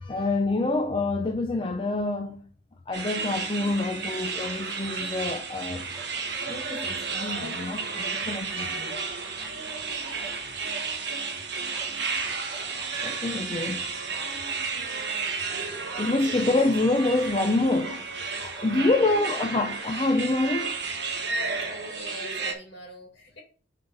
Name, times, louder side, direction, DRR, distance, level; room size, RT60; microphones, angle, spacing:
voice 1, 0.0-2.4 2.9-5.9 6.5-9.0 13.0-13.9 16.0-20.8, left 2 dB, 25° left, 0.5 m, -27 dB
sound 1, 2.3-2.4 4.4-4.6 5.9-7.4 7.7-8.3 8.9-9.1 9.4-10.4 10.7-12.2 12.5-13.2 13.6-13.8 14.4-14.6 15.2-15.3 15.9-16.2 17.8-18.8 19.1-19.2, right 3 dB, 10° right, 1.1 m, -48 dB
sound 2, 2.9-22.5, right 4 dB, 55° right, 1.4 m, -32 dB
voice 2, 19.0-19.4 21.7-23.4, equal, 55° left, 2.3 m, -43 dB
6.4 x 3.9 x 5.8 m
head